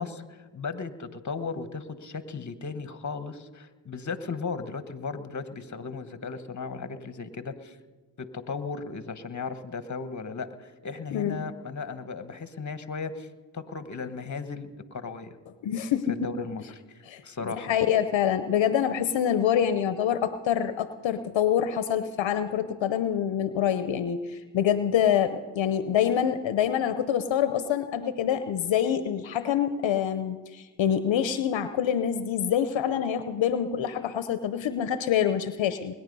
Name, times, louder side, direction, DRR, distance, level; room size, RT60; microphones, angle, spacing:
voice 1, 0.0-7.8 8.2-13.3 13.5-15.4 16.1-17.7, left 4 dB, 40° left, 11 dB, 1.3 m, -36 dB
voice 2, 11.1-11.4 15.6-16.2 17.1-17.2 17.6-35.9, left 9 dB, 70° left, 11 dB, 0.8 m, -26 dB
21.0 x 10.0 x 5.4 m, 1.3 s
supercardioid pair, 50°, 46 cm